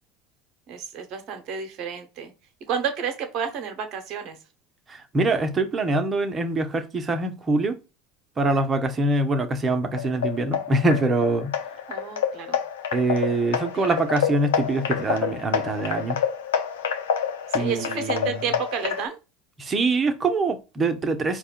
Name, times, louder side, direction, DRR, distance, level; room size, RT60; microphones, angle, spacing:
voice 1, 0.7-2.3 2.7-4.4 11.9-12.6 13.7-13.9 17.5-19.2, right 7 dB, 55° right, 1.0 m, -31 dB
voice 2, 4.9-7.7 8.4-11.5 12.9-16.2 17.5-18.4 19.6-21.4, right 2 dB, 30° right, 1.0 m, -24 dB
sound 1, 10.0-19.1, left 8 dB, 80° left, 0.6 m, -28 dB
4.7 x 2.4 x 4.5 m
hypercardioid pair, 75°, 0 cm